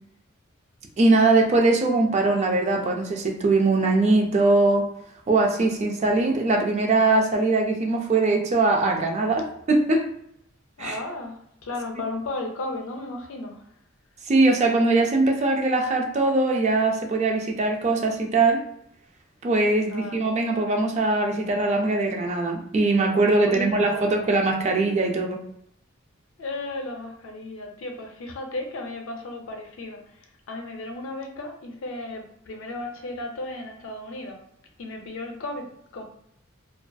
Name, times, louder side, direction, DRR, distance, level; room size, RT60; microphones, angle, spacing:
voice 1, 1.0-4.9 5.3-10.1 10.8-11.0 14.3-18.6 19.4-25.4, right 2 dB, 35° right, 2 dB, 0.3 m, -21 dB
voice 2, 10.8-13.7 19.9-20.3 23.4-24.3 26.4-34.4 34.8-36.0, left 2 dB, 75° left, 4 dB, 0.4 m, -35 dB
2.5 x 2.3 x 2.2 m, 0.73 s
head